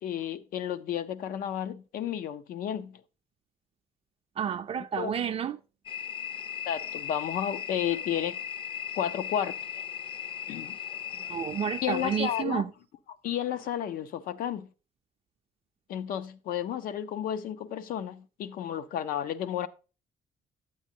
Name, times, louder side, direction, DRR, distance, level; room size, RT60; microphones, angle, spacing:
voice 1, 0.0-3.0 5.0-5.2 6.7-8.4 8.9-9.8 10.5-10.8 11.8-12.6 13.2-14.7 15.9-19.7, left 10 dB, 80° left, 0.6 m, -32 dB
voice 2, 4.4-5.6 11.3-12.7, right 8 dB, 40° right, 0.4 m, -30 dB
sound 1, 5.9-12.4, left 9 dB, 40° left, 0.5 m, -37 dB
8.6 x 8.2 x 2.7 m
cardioid pair, 130°, 14 cm